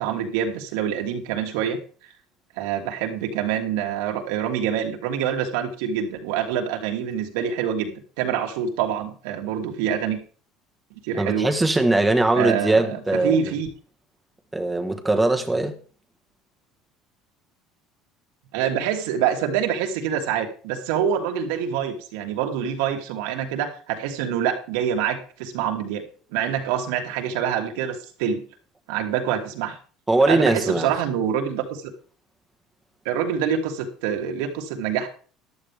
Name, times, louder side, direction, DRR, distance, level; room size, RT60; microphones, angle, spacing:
voice 1, 0.0-1.8 2.6-10.2 11.0-11.5 12.3-13.7 18.5-26.0 26.3-28.4 28.9-29.8 30.3-31.9 33.0-35.1, right 8 dB, 90° right, 2.8 m, -26 dB
voice 2, 11.2-13.5 14.5-15.8 30.1-30.9, right 2 dB, 5° right, 1.4 m, -21 dB
14.0 x 11.5 x 3.5 m
cardioid pair, 145°, 0 cm